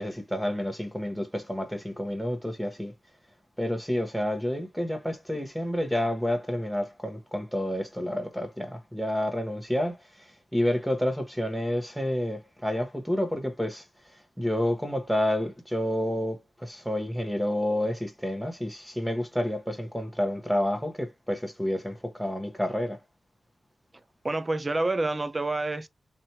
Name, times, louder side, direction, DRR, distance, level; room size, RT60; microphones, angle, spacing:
voice 1, 0.0-2.9 3.6-13.8 14.1-23.0, left 1 dB, ahead, 1.1 m, -29 dB
voice 2, 24.2-25.9, right 2 dB, 20° right, 0.5 m, -28 dB
4.3 x 3.0 x 2.8 m
wide cardioid pair, 170°, 0 cm